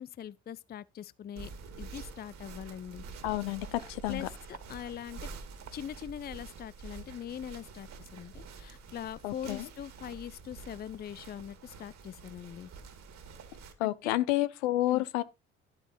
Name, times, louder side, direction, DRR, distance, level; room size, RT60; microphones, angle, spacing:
voice 1, 0.0-1.5 1.8-3.0 4.1-5.3 5.7-12.7 13.8-14.2 14.9-15.0, left 9 dB, 30° left, 0.5 m, -42 dB
sound 1, 1.4-13.7, right 5 dB, 50° right, 2.6 m, -47 dB
voice 2, 3.2-4.3 9.2-9.7 13.8-15.2, left 16 dB, 70° left, 1.0 m, -30 dB
12.0 x 9.0 x 3.0 m
figure-of-eight pair, 50°, 33 cm